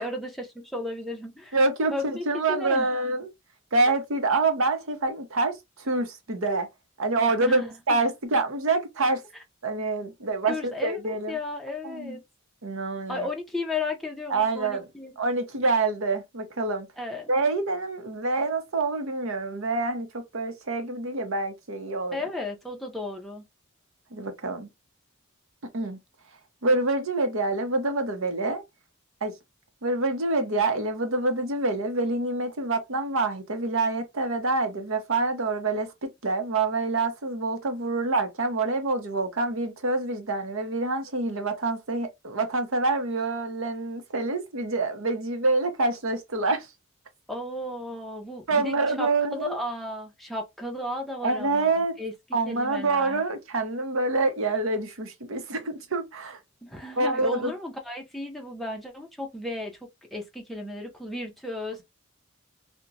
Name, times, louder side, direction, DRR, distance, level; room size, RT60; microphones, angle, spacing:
voice 1, 0.0-1.6 1.9-2.9 7.4-7.8 10.5-12.2 13.1-15.1 17.0-17.3 22.1-23.4 47.3-52.1 52.5-53.2 56.6-61.8, left 2 dB, ahead, 0.5 m, -34 dB
voice 2, 1.5-3.3 3.7-6.7 7.0-9.2 9.6-11.3 11.8-12.2 12.6-13.3 14.3-14.9 15.2-16.9 17.3-22.2 24.1-24.7 25.7-26.0 26.6-28.6 29.2-29.3 29.8-46.7 48.5-49.6 51.2-52.0 52.3-56.4 57.0-57.5, right 3 dB, 70° right, 0.7 m, -26 dB
2.8 x 2.2 x 2.5 m
head